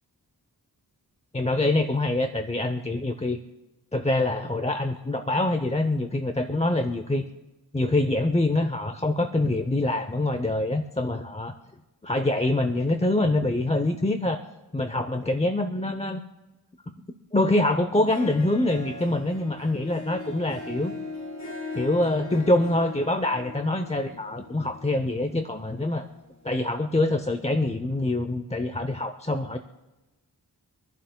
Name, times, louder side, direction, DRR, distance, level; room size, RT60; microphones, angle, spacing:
voice 1, 1.3-3.4 3.9-7.3 7.7-11.5 12.0-14.4 14.7-16.2 17.3-20.9 21.7-26.1 26.4-29.6, left 2 dB, 15° left, 7 dB, 0.7 m, -25 dB
Harp, 17.9-26.5, left 3 dB, 45° left, 2.1 m, -40 dB
26.0 x 11.5 x 2.2 m, 1.1 s
wide cardioid pair, 80°, 39 cm